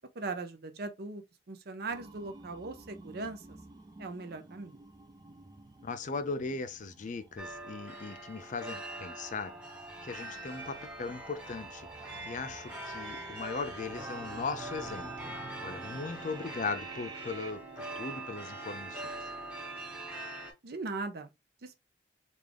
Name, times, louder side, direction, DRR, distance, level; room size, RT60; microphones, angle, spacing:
voice 1, 0.1-1.2 1.5-3.6 4.0-4.8 20.6-21.3 21.6-21.8, right 3 dB, 60° right, 0.6 m, -39 dB
sound 1, 1.9-17.5, right 3 dB, 20° right, 0.4 m, -51 dB
voice 2, 5.8-9.6 10.0-15.4 15.6-19.1, left 4 dB, 45° left, 0.5 m, -38 dB
sound 2, 7.4-20.5, right 2 dB, 5° right, 1.2 m, -43 dB
3.6 x 2.4 x 3.3 m
head